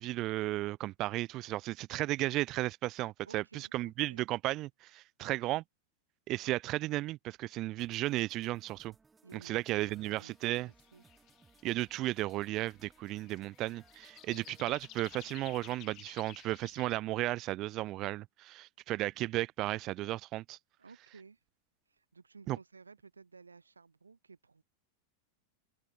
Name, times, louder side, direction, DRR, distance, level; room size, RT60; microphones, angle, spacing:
voice 1, 0.0-5.6 6.3-8.9 9.3-10.7 11.6-20.6 22.5-22.6, right 17 dB, 35° right, 0.4 m, -34 dB
voice 2, 3.2-4.2 5.2-5.6 9.2-11.0 14.3-14.7 20.8-21.4 21.8-24.6, right 4 dB, 75° right, 2.4 m, -56 dB
sound 1, 7.8-15.8, right 4 dB, 15° right, 4.9 m, -65 dB
sound 2, 9.9-17.0, left 17 dB, 35° left, 6.0 m, -55 dB
open air
figure-of-eight pair, 90°, 0 cm